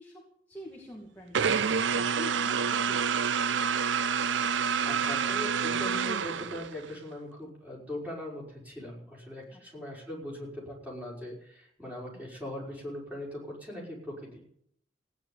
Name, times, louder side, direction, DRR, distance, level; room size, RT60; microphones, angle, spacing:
voice 1, 0.0-3.1 9.5-9.6 12.1-12.2, left 1 dB, 10° left, -2 dB, 2.2 m, -47 dB
sound 1, 1.3-6.9, right 6 dB, 85° right, 0.6 m, -28 dB
voice 2, 4.8-14.5, left 1 dB, 10° right, -3 dB, 5.5 m, -40 dB
16.5 x 9.8 x 8.8 m, 0.68 s
head